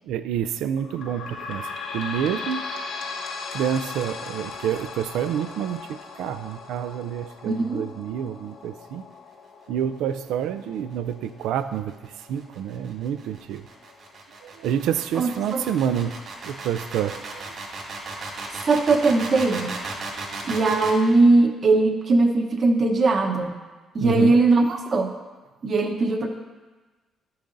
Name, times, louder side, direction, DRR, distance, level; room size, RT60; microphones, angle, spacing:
voice 1, 0.0-2.6 3.5-9.0 9.7-13.7 14.4-16.2 16.4-17.6 18.0-18.2 23.9-24.3, right 9 dB, 90° right, 11 dB, 0.3 m, -28 dB
sound 1, 0.8-13.9 14.5-14.6 14.9-15.0 15.8-15.9, left 4 dB, 75° left, 0.8 m, -38 dB
voice 2, 7.4-7.8 15.2-15.6 18.7-19.7 20.4-23.5 23.9-25.1 25.6-26.3, right 3 dB, 45° right, 3 dB, 0.9 m, -20 dB
sound 2, 11.7-21.0, right 3 dB, 65° right, 2.3 m, -35 dB
11.0 x 6.9 x 2.6 m, 1.3 s
cardioid pair, 90°, 0 cm